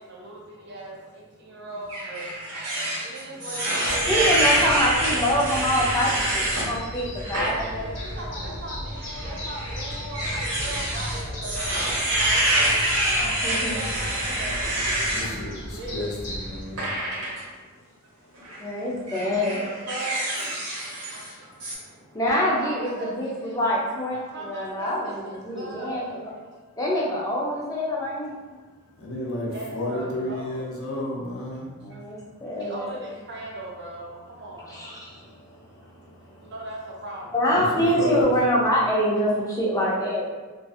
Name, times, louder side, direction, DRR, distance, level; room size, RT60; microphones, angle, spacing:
voice 1, 0.0-2.3 3.0-4.2 5.0-5.5 7.3-11.8 12.2-12.3 13.0-15.1 15.7-16.2 19.4-20.3 21.1-21.2 22.3-23.6 24.3-26.2 29.5-30.7 32.6-34.7 36.4-37.4, right 2 dB, 50° right, -2 dB, 0.5 m, -38 dB
sound 1, 1.9-6.7 7.2-7.5 8.0-8.1 9.1-15.3 16.8-17.4 18.4-18.6 19.1-21.3 21.6-21.7, right 1 dB, 80° right, 0.9 m, -26 dB
sound 2, 3.8-16.6, equal, 40° left, 0.8 m, -35 dB
voice 2, 4.1-7.8 13.4-13.8 18.6-19.7 22.1-22.9 23.2-24.1 24.5-26.0 26.8-28.3 31.8-32.9 34.7-35.1 37.3-40.3, equal, 15° left, -5 dB, 0.4 m, -25 dB
voice 3, 15.1-16.1 16.4-16.9 29.0-31.6 37.5-38.3, left 2 dB, 70° left, -3 dB, 0.6 m, -31 dB
2.6 x 2.4 x 2.3 m, 1.3 s
head